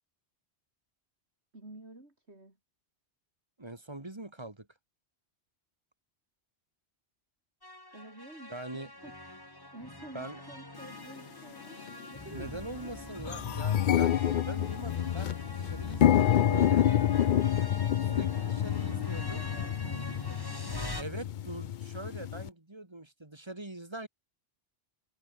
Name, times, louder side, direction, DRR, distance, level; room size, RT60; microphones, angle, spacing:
voice 1, 1.5-2.6 7.9-12.9 18.1-20.0 20.3-21.0, right 2 dB, 75° right, 5.7 m, -51 dB
voice 2, 3.6-4.7 8.5-8.9 10.1-10.4 12.3-16.9 18.1-19.5 21.0-24.1, right 2 dB, 25° right, 2.2 m, -43 dB
sound 1, 7.6-21.0, left 1 dB, 20° left, 3.2 m, -44 dB
sound 2, 10.9-11.0 11.8-12.0 12.4-12.5 12.8-22.5, left 10 dB, 55° left, 0.6 m, -28 dB
omnidirectional pair, 1.1 m